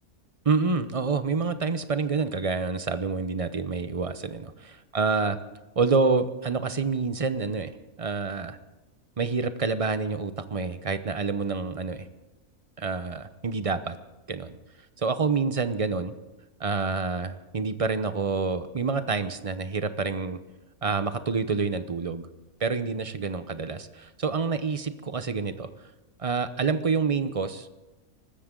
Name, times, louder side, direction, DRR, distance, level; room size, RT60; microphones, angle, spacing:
voice 1, 0.4-5.4 5.8-7.7 8.0-8.6 9.2-12.1 12.8-14.0 14.3-14.6 15.0-16.1 16.6-20.4 20.8-22.3 22.6-25.7 26.2-27.7, right 4 dB, 30° right, 11 dB, 0.7 m, -27 dB
24.5 x 13.5 x 3.8 m, 1.1 s
omnidirectional pair, 1.4 m